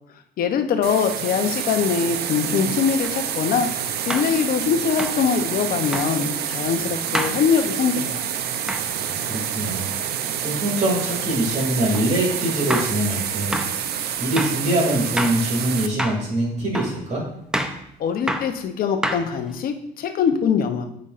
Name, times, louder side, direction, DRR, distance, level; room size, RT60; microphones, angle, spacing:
voice 1, 0.4-3.7 4.1-8.2 18.0-20.9, left 7 dB, 60° left, 7 dB, 0.8 m, -22 dB
sound 1, 0.8-15.9, right 9 dB, 70° right, 0.6 m, -28 dB
sound 2, 3.0-3.2 4.1-4.3 5.0-5.2 5.9-6.1 7.1-7.4 8.7-8.9 11.9-12.1 12.7-13.0 13.5-13.7 14.4-14.6 15.2-15.4 16.0-16.3 16.7-17.0 17.5-17.8 18.3-18.5 19.0-19.5, equal, 5° right, 0.6 m, -27 dB
voice 2, 8.8-9.9 10.4-13.6 14.2-17.2, right 1 dB, 45° right, -2 dB, 2.5 m, -24 dB
8.5 x 5.2 x 2.5 m, 0.76 s
cardioid pair, 110°, 17 cm